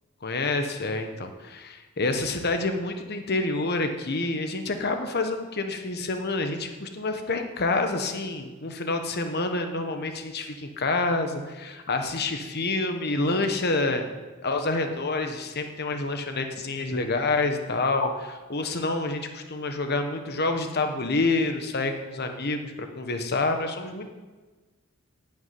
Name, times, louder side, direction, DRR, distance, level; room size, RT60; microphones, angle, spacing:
voice 1, 0.2-14.0 14.4-24.1, left 3 dB, 50° left, 6 dB, 1.2 m, -28 dB
11.0 x 7.2 x 9.3 m, 1.3 s
head